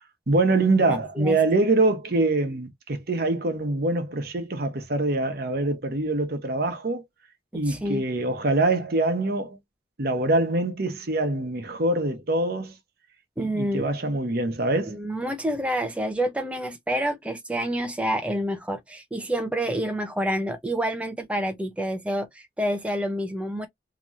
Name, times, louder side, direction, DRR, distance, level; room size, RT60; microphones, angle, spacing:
voice 1, 0.3-7.0 7.5-9.6 10.0-12.7 13.4-15.0, right 2 dB, 55° right, 1.0 m, -24 dB
voice 2, 0.8-1.4 7.5-8.0 13.4-13.9 14.8-23.7, equal, 5° right, 0.5 m, -28 dB
3.0 x 2.9 x 2.5 m
head